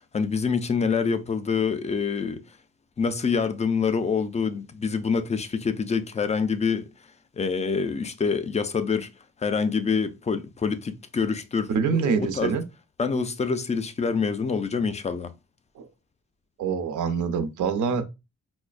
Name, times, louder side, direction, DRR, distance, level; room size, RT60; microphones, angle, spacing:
voice 1, 0.1-2.6 3.0-6.8 7.3-9.1 9.4-12.6 13.0-15.3, left 5 dB, 25° left, 0.3 m, -26 dB
voice 2, 11.7-12.6 15.8-15.9 16.6-18.0, right 6 dB, 85° right, 0.6 m, -25 dB
4.5 x 2.1 x 2.4 m
cardioid pair, 115°, 29 cm